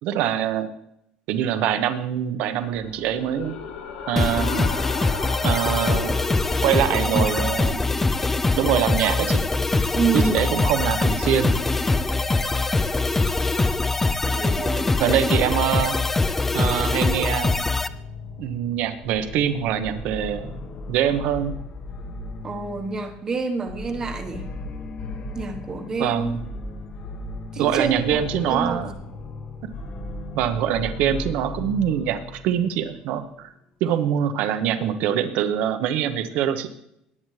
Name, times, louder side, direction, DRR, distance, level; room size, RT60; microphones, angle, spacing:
voice 1, 0.0-0.7 1.3-3.6 4.1-4.7 5.4-6.1 6.6-7.8 8.5-9.4 10.1-11.6 15.0-16.0 16.5-17.6 18.4-20.6 20.9-21.5 26.0-26.4 27.6-28.9 30.3-33.5 33.8-36.7, right 10 dB, 60° right, 9 dB, 1.0 m, -24 dB
sound 1, 2.5-7.7, left 6 dB, 80° left, 2.1 m, -36 dB
sound 2, 4.2-17.9, left 3 dB, 10° left, 0.4 m, -23 dB
voice 2, 7.0-7.4 7.7-7.9 9.9-10.5 14.3-15.2 22.4-24.5 25.3-26.4 27.5-28.9, right 4 dB, 20° right, 5 dB, 1.2 m, -28 dB
sound 3, 17.5-33.1, left 2 dB, 40° left, 1.5 m, -36 dB
18.5 x 8.9 x 3.2 m, 0.78 s
cardioid pair, 160°, 3 cm